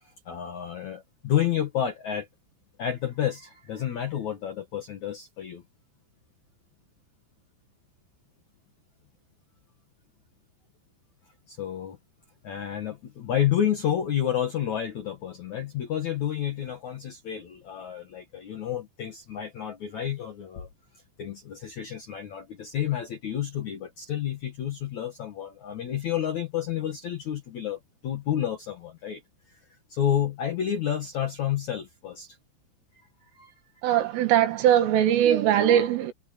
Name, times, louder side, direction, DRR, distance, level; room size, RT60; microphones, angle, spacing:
voice 1, 0.3-2.3 2.8-5.6 11.5-12.0 12.4-20.7 21.2-29.2 29.9-32.4 33.3-33.5, left 10 dB, 65° left, 1.9 m, -30 dB
voice 2, 33.8-36.1, right 10 dB, 85° right, 4.5 m, -21 dB
omnidirectional pair, 5.6 m